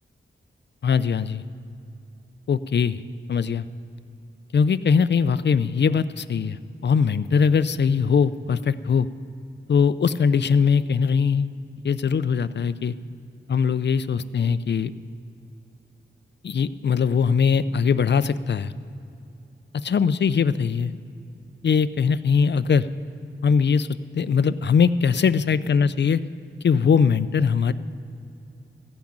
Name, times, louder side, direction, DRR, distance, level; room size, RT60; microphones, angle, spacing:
voice 1, 0.8-1.4 2.5-3.0 3.3-3.6 4.5-9.1 9.7-11.5 11.8-12.9 13.5-14.9 16.4-18.7 19.8-20.9 21.6-22.9 23.4-23.9 24.1-26.2 26.6-27.7, left 6 dB, 55° left, 15 dB, 0.5 m, -21 dB
14.5 x 5.9 x 8.6 m, 2.7 s
cardioid pair, 45°, 21 cm